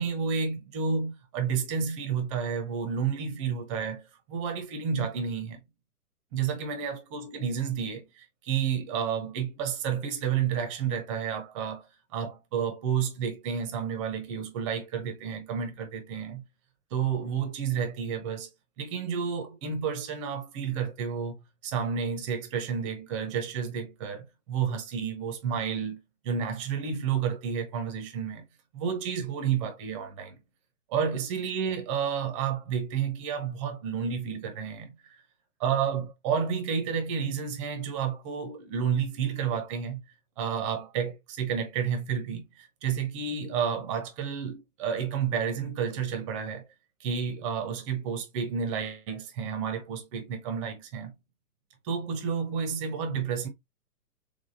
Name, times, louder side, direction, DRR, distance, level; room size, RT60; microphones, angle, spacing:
voice 1, 0.0-5.6 6.3-11.9 12.1-16.4 16.9-18.5 18.8-21.4 21.6-28.4 28.7-30.4 30.9-35.2 35.6-40.0 40.4-46.6 47.0-51.1 51.8-53.5, right 7 dB, 20° right, 0.7 m, -31 dB
3.5 x 3.4 x 2.4 m
hypercardioid pair, 135°, 46 cm